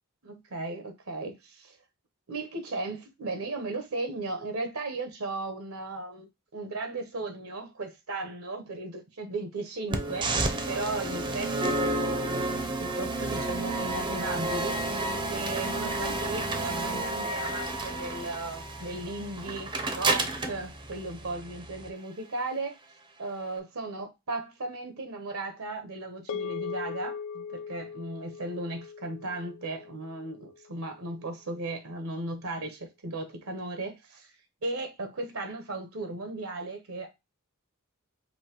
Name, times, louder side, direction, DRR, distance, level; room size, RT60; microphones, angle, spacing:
voice 1, 0.2-1.8 2.3-6.3 6.5-14.8 15.0-22.8 23.2-34.3 34.6-37.1, right 2 dB, 80° right, 1.0 m, -36 dB
sound 1, 9.9-21.9, right 2 dB, 20° right, 0.6 m, -31 dB
sound 2, 26.3-30.8, left 6 dB, 70° left, 0.4 m, -39 dB
5.5 x 2.7 x 3.0 m
head